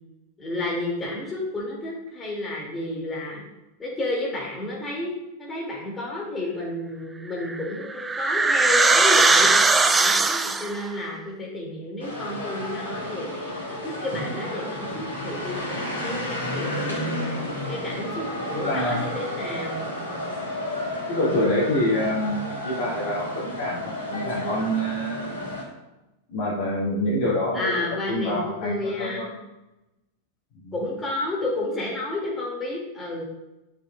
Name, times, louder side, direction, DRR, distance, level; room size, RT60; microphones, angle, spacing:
voice 1, 0.4-3.4 3.8-5.1 5.4-9.5 9.9-17.1 17.7-19.9 27.5-29.4 30.7-33.2, left 2 dB, 15° left, -4 dB, 2.7 m, -31 dB
sound 1, 7.4-10.8, right 3 dB, 10° right, 0.5 m, -19 dB
sound 2, 12.0-25.6, left 1 dB, 70° left, 2.8 m, -31 dB
voice 2, 18.5-19.0 21.1-25.3 26.3-29.3 30.6-30.7, left 1 dB, 45° left, -5 dB, 2.8 m, -26 dB
11.5 x 6.3 x 2.5 m, 0.99 s
figure-of-eight pair, 90°, 0 cm